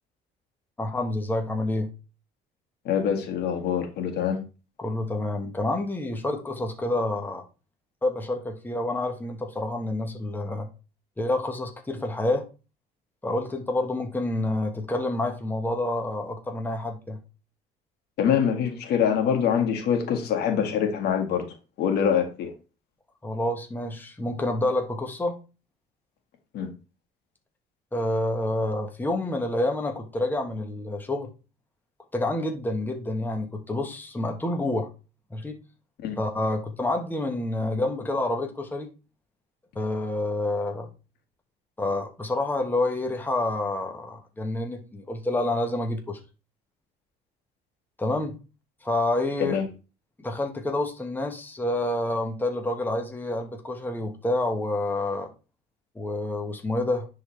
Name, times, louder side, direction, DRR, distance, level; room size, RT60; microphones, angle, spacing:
voice 1, 0.8-1.9 4.8-7.4 8.0-10.7 11.2-12.4 13.2-17.2 23.2-25.4 27.9-31.3 32.1-34.9 35.3-35.6 36.2-38.9 39.7-40.9 41.8-46.2 48.0-48.4 48.8-49.6 50.2-55.3 55.9-57.1, left 2 dB, 10° left, 1.2 m, -28 dB
voice 2, 2.9-4.4 18.2-21.4 21.8-22.5 26.5-26.7 36.0-36.2 49.4-49.7, left 8 dB, 75° left, 1.8 m, -24 dB
10.0 x 3.9 x 3.2 m
cardioid pair, 110°, 17 cm